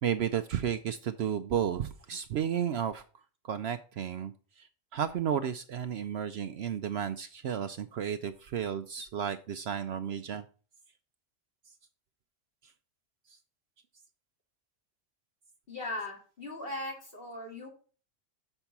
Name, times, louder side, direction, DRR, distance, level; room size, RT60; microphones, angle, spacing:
voice 1, 0.0-3.0 3.5-4.3 4.6-4.7 4.9-10.4, right 9 dB, 65° right, 10 dB, 0.7 m, -32 dB
voice 2, 15.7-17.7, left 1 dB, 50° left, 0 dB, 2.5 m, -38 dB
6.9 x 5.4 x 5.8 m, 0.38 s
omnidirectional pair, 1.3 m